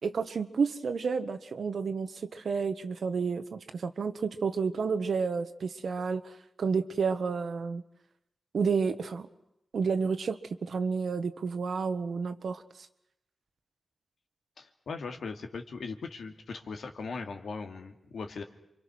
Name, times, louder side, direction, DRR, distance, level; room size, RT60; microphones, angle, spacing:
voice 1, 0.0-6.3 6.6-7.8 8.5-9.3 9.7-12.6, right 5 dB, 80° right, 10 dB, 1.4 m, -30 dB
voice 2, 14.6-18.4, left 4 dB, 90° left, 5 dB, 2.5 m, -39 dB
28.5 x 24.5 x 6.3 m, 0.86 s
cardioid pair, 70°, 0 cm